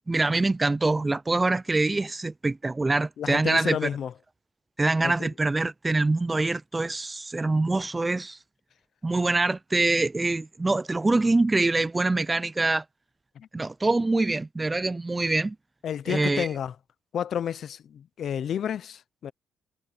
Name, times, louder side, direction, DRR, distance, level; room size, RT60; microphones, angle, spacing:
voice 1, 0.1-3.8 4.8-8.4 9.0-12.8 13.5-15.6 16.1-16.5, right 2 dB, 20° right, 0.4 m, -24 dB
voice 2, 3.2-4.1 5.0-5.3 13.3-13.5 15.8-16.7 17.1-19.3, left 9 dB, 60° left, 0.7 m, -30 dB
cardioid pair, 90°, 0 cm